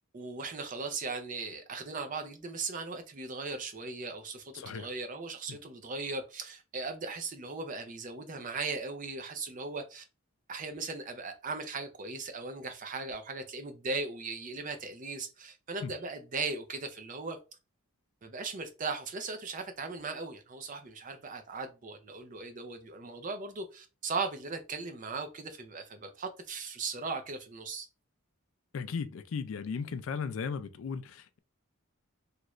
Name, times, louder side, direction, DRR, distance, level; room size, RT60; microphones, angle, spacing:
voice 1, 0.1-10.0 10.5-17.4 18.2-27.9, right 4 dB, 40° right, 0.5 m, -38 dB
voice 2, 4.5-4.9 5.5-5.6 15.8-15.9 28.7-31.4, left 5 dB, 65° left, 0.4 m, -36 dB
3.0 x 2.4 x 3.0 m
head